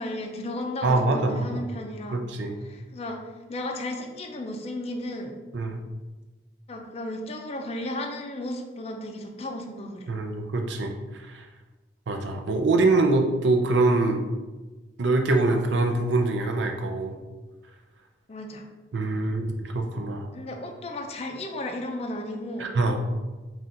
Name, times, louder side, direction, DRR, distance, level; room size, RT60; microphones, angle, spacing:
voice 1, 0.0-2.2 2.6-3.2 3.5-5.3 6.7-10.1 18.3-18.6 20.3-22.7, left 1 dB, 35° left, 4 dB, 0.4 m, -34 dB
voice 2, 0.8-1.7 2.1-2.6 5.5-5.8 10.1-11.4 12.1-14.2 15.0-17.1 18.9-20.3 22.6-23.0, right 2 dB, 80° right, 4 dB, 0.5 m, -24 dB
4.1 x 2.4 x 3.8 m, 1.2 s
head